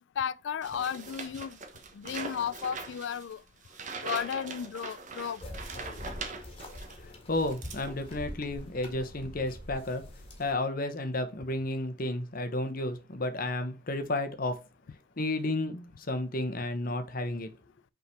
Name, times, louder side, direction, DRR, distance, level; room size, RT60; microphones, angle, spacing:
voice 1, 0.2-1.6 1.9-3.4 4.0-5.4, left 7 dB, 70° left, 0.4 m, -34 dB
sound 1, 0.6-7.0 7.3-8.3, right 4 dB, 40° right, 1.0 m, -42 dB
sound 2, 5.4-10.6, left 1 dB, 30° left, 1.6 m, -44 dB
voice 2, 7.0-10.0 10.4-14.6 15.2-17.5, left 2 dB, 45° left, 0.9 m, -32 dB
sound 3, 8.3-10.8, right 2 dB, 70° right, 1.3 m, -54 dB
5.6 x 3.8 x 4.5 m
head